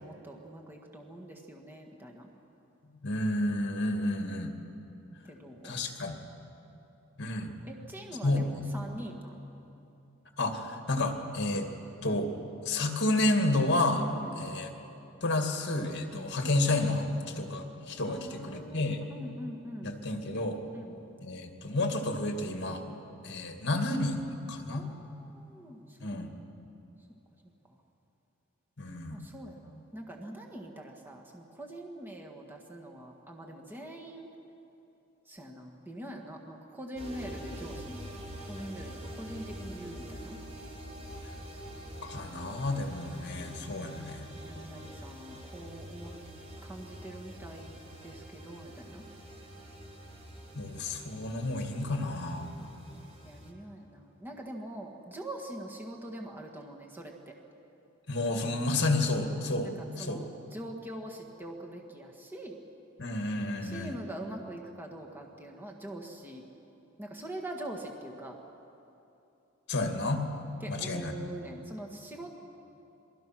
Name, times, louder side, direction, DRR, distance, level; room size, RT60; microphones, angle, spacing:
voice 1, 0.0-2.3 5.3-5.7 7.6-9.4 14.2-14.5 16.1-16.4 18.1-19.9 20.7-20.9 24.7-26.5 29.1-34.3 35.2-38.1 38.4-40.4 44.4-46.1 46.6-49.0 53.2-57.4 59.6-62.6 63.6-66.4 67.0-68.4 70.6-72.3, right 1 dB, 10° right, 0 dB, 1.7 m, -44 dB
voice 2, 3.0-4.5 5.6-6.2 7.2-7.5 8.2-8.6 10.4-11.7 12.0-12.3 12.6-14.1 14.4-14.7 15.2-19.0 19.8-20.6 21.2-22.8 23.2-24.8 26.0-26.3 28.8-29.2 42.0-44.3 50.5-52.5 58.1-59.7 60.0-60.2 63.0-63.9 69.7-70.2 70.7-71.2, left 2 dB, 55° left, 4 dB, 2.4 m, -30 dB
sound 1, 36.9-53.5, equal, 30° right, 3.0 m, -45 dB
27.0 x 22.0 x 6.2 m, 2.9 s
head